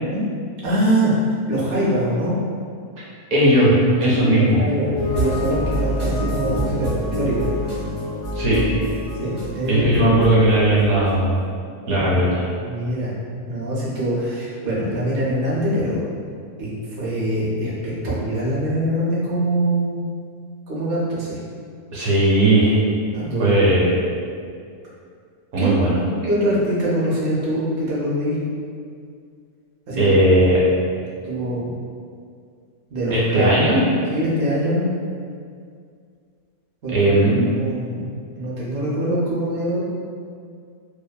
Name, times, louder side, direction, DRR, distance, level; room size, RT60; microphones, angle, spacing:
voice 1, 0.6-1.1 1.5-2.3 4.1-7.5 9.2-9.9 12.0-12.2 12.6-13.1 13.5-16.0 16.6-16.7 17.0-20.1 20.7-21.3 23.1-23.6 25.6-25.7 26.2-28.4 29.9-30.1 31.2-31.7 32.9-33.7 34.1-34.8 36.8-38.0 38.3-39.8, right 1 dB, 55° right, -8 dB, 0.7 m, -23 dB
voice 2, 3.3-4.6 8.3-8.6 9.7-11.4 11.9-12.4 21.9-22.8 23.4-23.9 25.5-26.0 30.0-30.6 33.1-33.8 36.9-37.4, right 1 dB, 70° right, -6 dB, 1.0 m, -17 dB
sound 1, 4.9-11.4, equal, 10° left, 0.8 m, -27 dB
2.6 x 2.3 x 2.2 m, 2.2 s
omnidirectional pair, 1.6 m